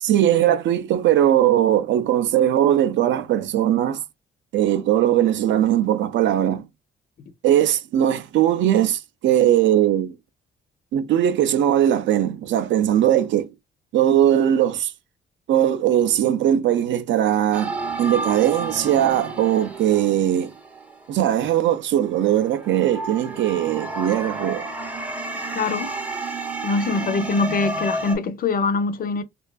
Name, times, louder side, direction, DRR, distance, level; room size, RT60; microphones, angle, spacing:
voice 1, 0.0-4.0 4.5-6.7 7.4-10.2 10.9-13.5 13.9-14.9 15.5-20.5 21.1-24.7, right 11 dB, 70° right, 0.4 m, -20 dB
sound 1, 17.5-21.6 22.1-28.2, right 2 dB, 5° right, 0.5 m, -31 dB
voice 2, 25.5-25.9 26.6-29.2, left 4 dB, 45° left, 0.4 m, -23 dB
2.5 x 2.3 x 2.2 m
cardioid pair, 90°, 20 cm